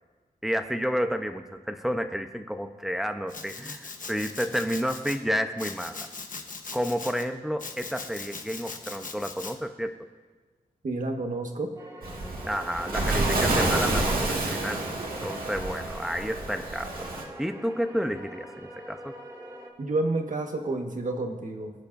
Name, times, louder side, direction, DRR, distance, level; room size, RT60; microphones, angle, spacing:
voice 1, 0.4-6.1 6.7-9.9 12.4-14.8 15.2-17.1 17.4-19.2, equal, ahead, 6 dB, 0.8 m, -30 dB
Domestic sounds home sounds, 3.3-5.2 5.6-7.2 7.6-9.5, left 4 dB, 65° left, 1.1 m, -40 dB
voice 2, 10.8-11.7 19.8-21.9, right 2 dB, 60° right, 2 dB, 1.5 m, -30 dB
sound 1, 11.8-19.7, right 1 dB, 25° right, 2.4 m, -44 dB
Waves surf, 12.0-17.2, right 2 dB, 75° right, 2.0 m, -28 dB
23.0 x 9.8 x 2.7 m, 1.4 s
wide cardioid pair, 100°, 15 cm